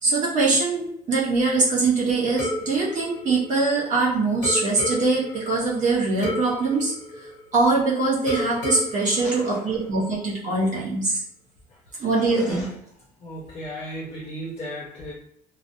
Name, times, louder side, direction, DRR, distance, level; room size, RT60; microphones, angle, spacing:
voice 1, 0.0-6.9 7.5-11.2 12.0-12.7, right 3 dB, 45° right, -5 dB, 0.9 m, -22 dB
sound 1, 2.4-4.0 4.4-7.8 8.3-10.2, left 1 dB, 85° left, 0.8 m, -33 dB
voice 2, 9.2-9.9 11.7-12.8 13.2-15.1, equal, 40° left, -3 dB, 0.5 m, -36 dB
2.6 x 2.0 x 2.5 m, 0.72 s
cardioid pair, 110°, 17 cm